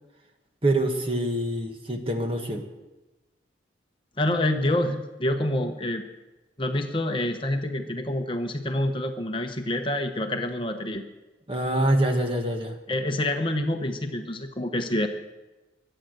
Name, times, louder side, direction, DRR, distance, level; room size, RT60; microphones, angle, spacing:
voice 1, 0.6-2.7 11.5-12.8, right 1 dB, 30° right, 4 dB, 1.6 m, -25 dB
voice 2, 4.2-6.0 6.6-11.0 12.9-15.1, left 1 dB, 25° left, 5 dB, 0.9 m, -27 dB
23.5 x 8.8 x 6.6 m, 1.1 s
head